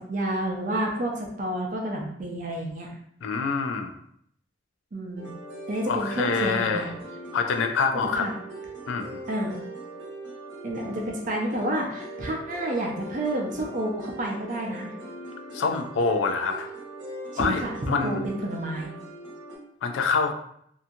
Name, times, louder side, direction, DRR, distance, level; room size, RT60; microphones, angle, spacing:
voice 1, 0.0-2.9 4.9-5.3 5.7-6.9 8.1-8.3 9.3-9.6 10.6-14.9 17.3-18.9, right 1 dB, 40° right, 0 dB, 0.5 m, -30 dB
voice 2, 3.2-3.9 5.9-6.9 7.3-8.3 8.9-9.2 15.5-16.7 17.4-18.2 19.8-20.3, left 4 dB, 80° left, 5 dB, 0.4 m, -26 dB
sound 1, 5.2-19.6, right 1 dB, 70° right, 1.0 m, -41 dB
2.7 x 2.3 x 2.6 m, 0.69 s
head